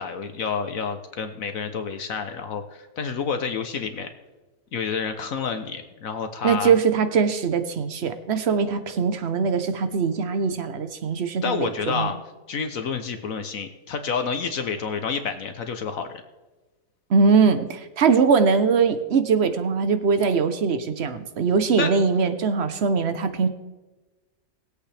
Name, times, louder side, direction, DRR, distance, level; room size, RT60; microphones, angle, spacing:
voice 1, 0.0-4.1 4.7-6.7 11.4-12.2 12.5-16.2 21.8-21.9, left 5 dB, 60° left, 7 dB, 1.2 m, -29 dB
voice 2, 6.4-12.1 17.1-23.5, right 5 dB, 50° right, 10 dB, 1.0 m, -21 dB
20.5 x 8.3 x 3.4 m, 1.2 s
omnidirectional pair, 1.7 m